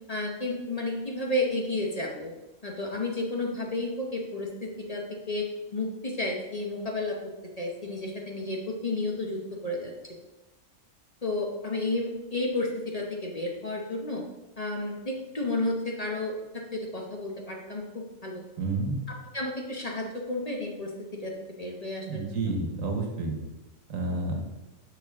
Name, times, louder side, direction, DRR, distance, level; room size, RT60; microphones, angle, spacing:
voice 1, 0.1-2.3 2.6-5.0 5.3-5.5 5.7-7.2 7.6-10.2 11.2-14.2 14.6-17.8 18.2-18.4 19.3-20.9 21.2-21.3 21.6-22.5, left 2 dB, 35° left, 0 dB, 0.9 m, -32 dB
voice 2, 18.6-19.0 22.1-23.3 23.9-24.4, right 2 dB, 85° right, 3 dB, 1.6 m, -30 dB
7.0 x 7.0 x 3.6 m, 1.1 s
omnidirectional pair, 1.4 m